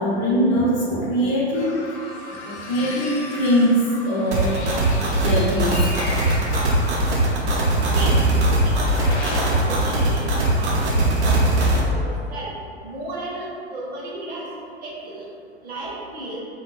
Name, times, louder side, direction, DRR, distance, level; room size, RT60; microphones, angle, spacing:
voice 1, 0.0-1.8 2.3-4.5 5.2-6.0 6.7-6.8, equal, 30° left, -5 dB, 0.5 m, -22 dB
sound 1, 1.5-9.6, left 2 dB, 80° left, 0.6 m, -36 dB
sound 2, 4.3-11.8, right 1 dB, 75° right, 0.6 m, -20 dB
voice 2, 9.2-12.5 12.8-14.5 14.8-15.3 15.6-16.4, right 1 dB, 25° right, -5 dB, 0.6 m, -34 dB
2.3 x 2.2 x 3.1 m, 2.4 s
hypercardioid pair, 100°, 34 cm